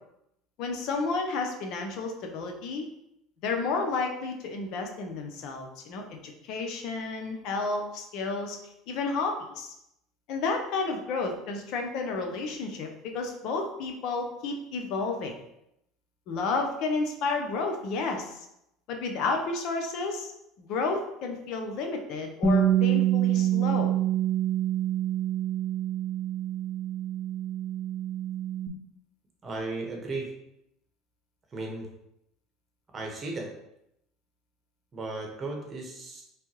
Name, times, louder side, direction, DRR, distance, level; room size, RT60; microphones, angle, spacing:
voice 1, 0.6-2.8 3.4-6.0 6.4-8.6 8.9-9.7 10.3-15.3 16.3-18.5 18.9-20.3 20.6-23.9, left 3 dB, 65° left, 3 dB, 0.7 m, -31 dB
Bass guitar, 22.4-28.7, right 10 dB, 15° left, 0.9 m, -26 dB
voice 2, 29.4-30.3 31.5-31.9 32.9-33.5 34.9-36.2, right 2 dB, 30° right, 1 dB, 1.2 m, -35 dB
4.5 x 3.4 x 2.9 m, 0.81 s
supercardioid pair, 95°, 0 cm